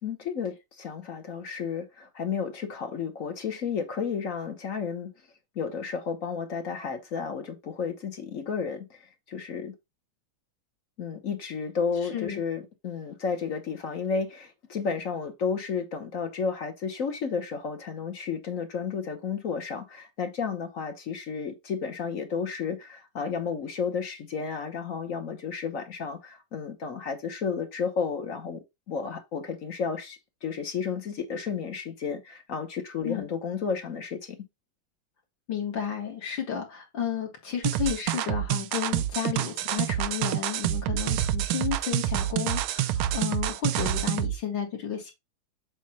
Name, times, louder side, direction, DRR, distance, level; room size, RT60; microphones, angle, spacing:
voice 1, 0.0-5.1 5.5-9.0 9.3-9.7 11.0-28.6 28.9-34.4, left 6 dB, 50° left, 1.2 m, -32 dB
voice 2, 12.0-12.4 33.0-33.3 35.5-45.1, left 8 dB, 65° left, 2.2 m, -32 dB
sound 1, 37.6-44.4, right 13 dB, 80° right, 1.4 m, -27 dB
7.5 x 2.5 x 5.5 m
omnidirectional pair, 2.3 m